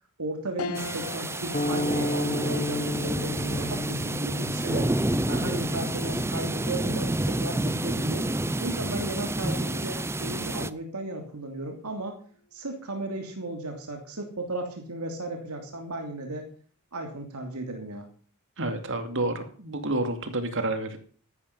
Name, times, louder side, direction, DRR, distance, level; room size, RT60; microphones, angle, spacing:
voice 1, 0.2-4.9 5.2-8.3 8.6-12.2 12.5-16.5 16.9-18.1, right 2 dB, 80° right, 3 dB, 3.0 m, -35 dB
sound 1, 0.6-10.2 10.7-10.8 12.1-12.5, left 3 dB, 85° left, 1.1 m, -44 dB
sound 2, 0.8-10.7, right 1 dB, 10° right, 0.6 m, -29 dB
sound 3, 1.5-9.9, left 2 dB, 30° left, 0.9 m, -34 dB
voice 2, 18.6-21.0, right 2 dB, 60° right, 7 dB, 2.3 m, -29 dB
14.5 x 12.5 x 5.6 m, 0.43 s
head